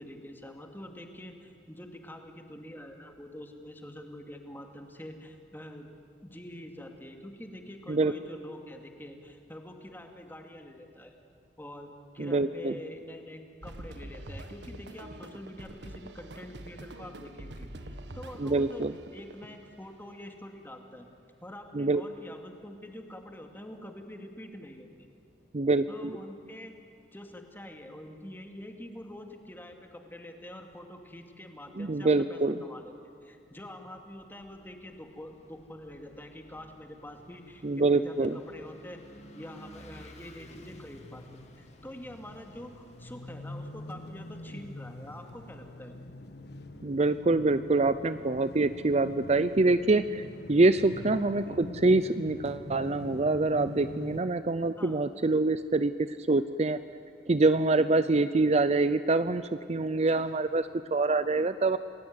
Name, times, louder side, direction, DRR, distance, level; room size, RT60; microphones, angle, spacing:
voice 1, 0.0-5.9 6.2-11.1 11.6-17.7 18.1-18.8 19.1-21.1 21.4-25.1 25.9-26.8 27.1-39.0 39.3-46.0 51.4-51.6 54.8-55.0 60.1-60.3, left 1 dB, 10° left, 4 dB, 2.4 m, -46 dB
voice 2, 12.2-12.8 18.4-18.9 21.7-22.0 25.5-26.2 31.8-32.6 37.6-38.4 46.8-55.9 56.3-56.8 57.3-61.8, right 3 dB, 35° right, 13 dB, 0.6 m, -25 dB
sound 1, 13.6-19.7, right 1 dB, 75° right, 1.6 m, -45 dB
Vehicle / Engine, 34.1-43.9, left 1 dB, 40° left, 2.5 m, -55 dB
sound 2, 39.9-54.2, left 1 dB, 65° left, 1.4 m, -44 dB
29.0 x 19.5 x 9.6 m, 2.5 s
head